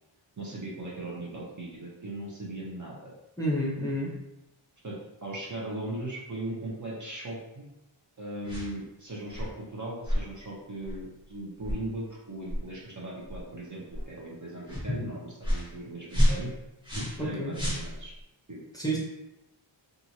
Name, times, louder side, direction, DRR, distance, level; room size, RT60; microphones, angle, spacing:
voice 1, 0.4-3.1 4.8-7.7 8.2-16.5 16.9-18.1 18.5-18.6, right 1 dB, 35° right, -4 dB, 0.8 m, -38 dB
voice 2, 3.4-4.1 17.2-17.5 18.7-19.0, equal, 10° left, -5 dB, 0.7 m, -29 dB
sound 1, 8.5-8.7 9.3-9.5 10.1-10.3 10.8-11.0 11.6-11.8 12.5-12.6 13.3-13.4 13.9-14.1 14.7-14.9 15.4-15.7 16.1-17.3 17.5-18.2, equal, 10° right, 1.1 m, -29 dB
2.8 x 2.5 x 2.7 m, 0.91 s
wide cardioid pair, 60°, 50 cm